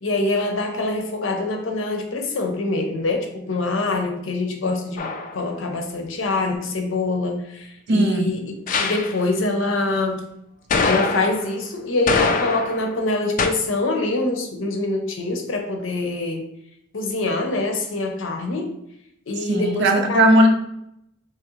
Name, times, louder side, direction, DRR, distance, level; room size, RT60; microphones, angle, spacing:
voice 1, 0.0-10.2 10.8-16.4 16.9-18.7 19.3-20.3, left 2 dB, 80° left, 3 dB, 0.7 m, -24 dB
sound 1, 5.0-5.4 8.7-9.2 10.7-11.5 12.1-12.9 13.4-13.5, left 4 dB, 45° left, 0.3 m, -23 dB
voice 2, 7.9-8.3 19.5-20.5, right 1 dB, 65° right, 5 dB, 0.5 m, -17 dB
3.7 x 2.9 x 3.0 m, 0.79 s
head